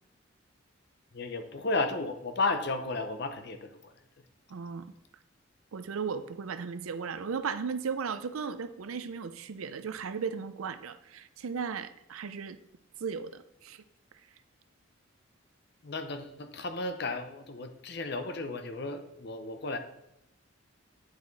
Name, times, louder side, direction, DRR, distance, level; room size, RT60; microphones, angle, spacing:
voice 1, 1.1-3.9 15.8-19.8, left 3 dB, 50° left, 8 dB, 0.7 m, -33 dB
voice 2, 4.5-4.9 5.7-12.6 13.0-13.8, right 6 dB, 90° right, 12 dB, 0.5 m, -36 dB
9.4 x 4.8 x 4.0 m, 0.82 s
head